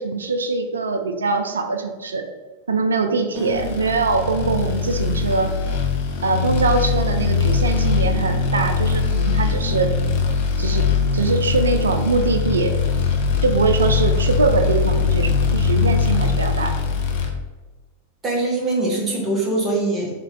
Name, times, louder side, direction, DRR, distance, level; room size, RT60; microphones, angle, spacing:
voice 1, 0.0-2.3 2.7-5.5 6.2-9.9 10.6-12.8 13.4-16.7, right 4 dB, 70° right, 6 dB, 0.4 m, -22 dB
voice 2, 3.3-3.7 18.2-20.1, right 2 dB, 20° right, -4 dB, 1.1 m, -23 dB
sound 1, 3.5-17.3, left 5 dB, 50° left, 0.5 m, -21 dB
2.9 x 2.8 x 3.7 m, 1.2 s
figure-of-eight pair, 90°, 0 cm